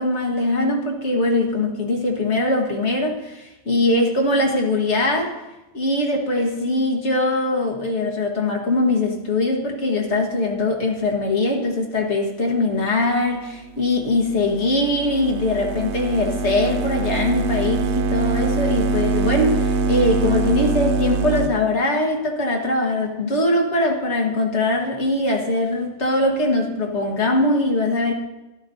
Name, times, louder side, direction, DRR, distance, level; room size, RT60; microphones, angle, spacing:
voice 1, 0.0-5.4 5.7-28.1, left 2 dB, 65° left, 1 dB, 1.9 m, -21 dB
sound 1, 13.8-21.5, right 3 dB, 70° right, 0.9 m, -23 dB
13.0 x 12.0 x 2.8 m, 1.0 s
omnidirectional pair, 1.2 m